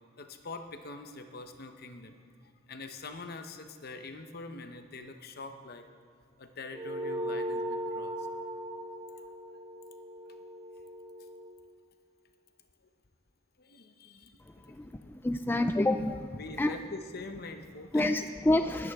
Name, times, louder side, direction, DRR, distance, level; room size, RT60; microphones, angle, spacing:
voice 1, 0.2-5.9 6.4-8.3 9.1-9.6 10.3-10.4 13.6-14.4 14.9-15.2 16.3-18.3 18.6-18.8, left 3 dB, 55° left, 7 dB, 0.9 m, -44 dB
sound 1, 6.7-11.5, equal, 20° right, 1.0 m, -38 dB
voice 2, 14.8-16.7 17.9-18.9, left 1 dB, 10° left, 7 dB, 0.3 m, -28 dB
19.5 x 9.6 x 3.6 m, 2.4 s
head